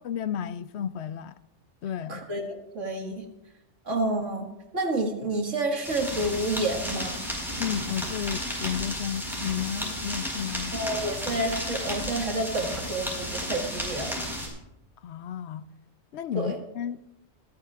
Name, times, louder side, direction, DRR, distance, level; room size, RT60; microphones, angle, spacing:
voice 1, 0.0-1.3 1.8-2.2 7.6-10.8 15.0-15.7 16.1-17.0, left 9 dB, 65° left, 0.8 m, -32 dB
voice 2, 2.1-3.2 3.9-4.5 4.7-7.2 10.7-14.2 16.3-16.6, right 1 dB, 75° right, 2.2 m, -29 dB
sound 1, 5.8-14.5, equal, ahead, 4.7 m, -33 dB
27.0 x 10.0 x 2.4 m
omnidirectional pair, 1.3 m